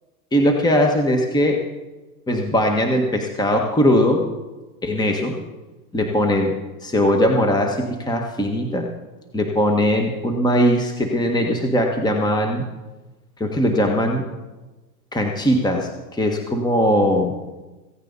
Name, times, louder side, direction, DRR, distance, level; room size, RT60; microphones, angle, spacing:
voice 1, 0.3-1.6 2.3-4.3 4.8-5.4 5.9-8.9 9.3-12.6 13.4-14.3 15.1-17.4, equal, 10° left, 3 dB, 1.5 m, -20 dB
16.0 x 15.5 x 4.1 m, 1.1 s
hypercardioid pair, 105°, 44 cm